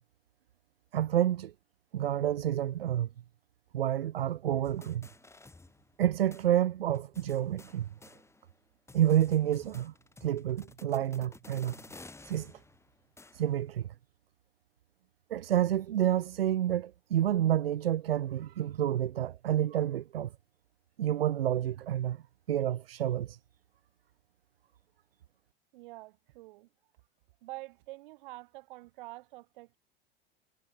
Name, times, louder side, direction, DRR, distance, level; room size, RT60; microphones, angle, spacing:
voice 1, 0.9-1.5 1.9-3.1 3.7-5.1 6.0-7.9 8.9-9.9 10.2-11.8 12.3-12.5 13.3-13.9 15.3-20.3 21.0-22.2 22.5-23.4, right 11 dB, 80° right, 0.5 m, -29 dB
sound 1, 4.6-6.1 6.3-6.5 6.9-8.6 8.9-13.7, left 3 dB, 10° left, 3.1 m, -53 dB
voice 2, 25.7-26.7 27.4-29.8, right 20 dB, 60° right, 2.3 m, -47 dB
figure-of-eight pair, 85°, 29 cm